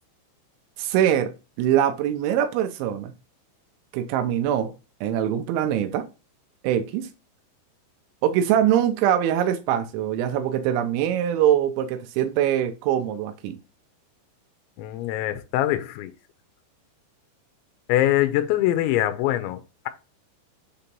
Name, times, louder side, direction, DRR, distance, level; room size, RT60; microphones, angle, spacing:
voice 1, 0.8-3.1 3.9-4.7 5.0-6.1 6.6-7.1 8.2-13.6, right 10 dB, 90° right, 3.1 m, -23 dB
voice 2, 14.8-16.1 17.9-19.9, left 14 dB, 85° left, 3.0 m, -23 dB
7.2 x 2.9 x 5.2 m
omnidirectional pair, 5.2 m